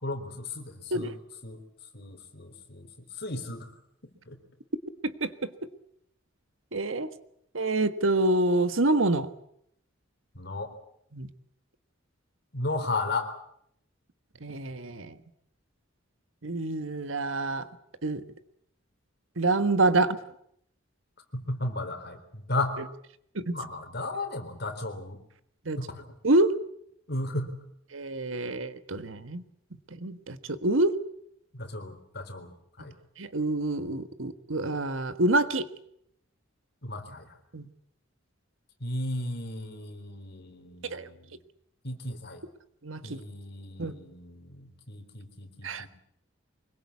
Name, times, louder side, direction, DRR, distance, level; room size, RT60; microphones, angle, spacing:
voice 1, 0.0-1.1 1.4-1.6 1.9-2.9 3.2-3.7 4.3-4.4 10.4-10.7 12.5-13.3 21.3-22.8 23.5-25.2 25.8-26.1 27.1-27.6 31.5-32.9 36.8-37.4 38.8-41.3 41.8-42.4 43.0-45.9, left 2 dB, 55° left, 7 dB, 3.9 m, -35 dB
voice 2, 6.7-7.1 7.5-9.3 11.1-11.3 14.4-15.2 16.4-17.7 18.0-18.2 19.4-20.2 23.3-23.5 25.6-25.8 26.2-26.6 27.9-29.4 30.0-31.0 33.2-35.7 37.5-37.7 40.8-41.1 42.8-43.2 43.8-43.9 45.6-45.9, right 2 dB, 80° right, 12 dB, 1.5 m, -27 dB
24.5 x 22.0 x 8.5 m, 0.72 s
head